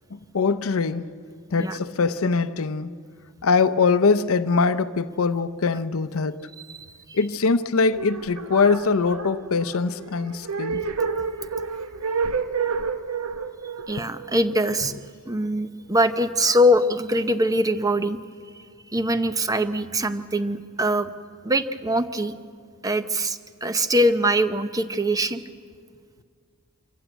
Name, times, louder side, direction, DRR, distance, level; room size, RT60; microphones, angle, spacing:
voice 1, 0.1-1.1 1.5-2.9 3.4-6.5 7.1-10.8, left 4 dB, 65° left, 0.6 m, -22 dB
voice 2, 6.7-7.2 13.9-14.9 15.3-18.2 18.5-18.7 18.9-21.1 21.4-22.3 22.8-25.4, equal, 15° right, 0.7 m, -23 dB
sound 1, 7.9-15.1, right 5 dB, 70° right, 1.0 m, -30 dB
25.5 x 15.0 x 8.1 m
head